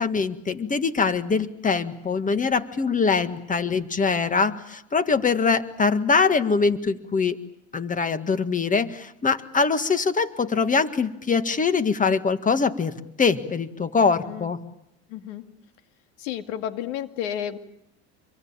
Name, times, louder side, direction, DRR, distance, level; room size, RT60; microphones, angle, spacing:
voice 1, 0.0-7.4 7.7-14.6, left 5 dB, 20° left, 11 dB, 1.8 m, -23 dB
voice 2, 15.1-15.4 16.2-17.6, left 10 dB, 75° left, 8 dB, 2.3 m, -31 dB
26.0 x 23.0 x 8.9 m, 0.82 s
supercardioid pair, 105°, 36 cm